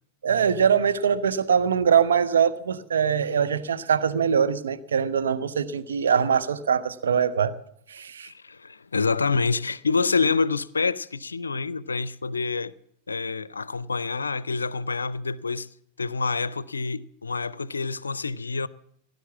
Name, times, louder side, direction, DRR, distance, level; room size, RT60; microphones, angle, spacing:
voice 1, 0.2-7.5 7.9-8.3, right 7 dB, 65° right, 0.9 m, -22 dB
voice 2, 8.2-12.7 13.1-15.7 16.0-18.7, left 4 dB, 75° left, 0.5 m, -27 dB
17.5 x 10.5 x 7.2 m
figure-of-eight pair, 90°, 0 cm